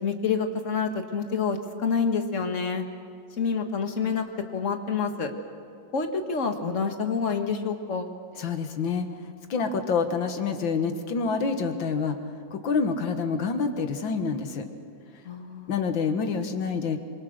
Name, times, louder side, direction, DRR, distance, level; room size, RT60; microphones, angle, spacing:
voice 1, 0.0-2.8 3.4-4.3 4.5-5.3 5.9-8.1 15.2-15.7, left 5 dB, 40° left, 5 dB, 1.7 m, -27 dB
voice 2, 8.4-9.1 9.5-12.2 12.5-14.7 15.7-17.0, left 5 dB, 80° left, 7 dB, 2.1 m, -27 dB
25.5 x 23.5 x 6.6 m, 2.3 s
omnidirectional pair, 2.1 m